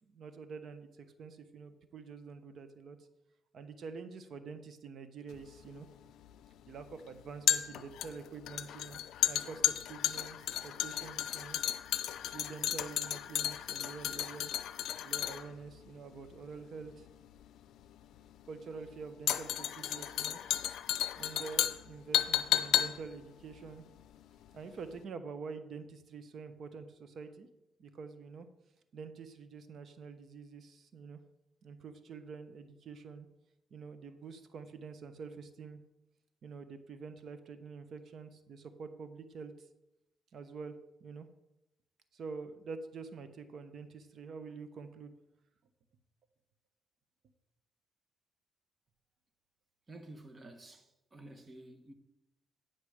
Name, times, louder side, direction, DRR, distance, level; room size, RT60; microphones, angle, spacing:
voice 1, 0.0-3.0 3.5-5.9 6.7-9.0 9.3-11.6 12.3-14.7 15.0-17.1 18.5-20.4 21.1-23.8 24.5-27.5 27.8-28.5 28.9-31.2 31.6-33.3 33.7-35.8 36.4-39.7 40.3-40.7 41.0-41.3 42.1-45.1, right 5 dB, 60° right, 0.9 m, -47 dB
sound 1, 5.3-24.6 24.9-25.0, left 11 dB, 80° left, 0.5 m, -34 dB
voice 2, 49.9-51.9, right 2 dB, 30° right, 1.3 m, -51 dB
10.0 x 5.8 x 5.0 m
cardioid pair, 90°, 0 cm